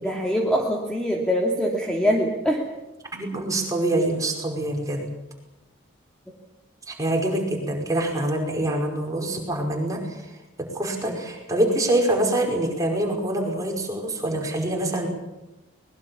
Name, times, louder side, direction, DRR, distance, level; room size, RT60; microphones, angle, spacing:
voice 1, 0.0-2.6 11.1-11.2, equal, 5° left, -1 dB, 2.7 m, -23 dB
voice 2, 3.1-5.0 6.9-10.3 10.6-15.1, right 1 dB, 15° right, 1 dB, 5.3 m, -25 dB
24.0 x 21.0 x 7.2 m, 0.99 s
head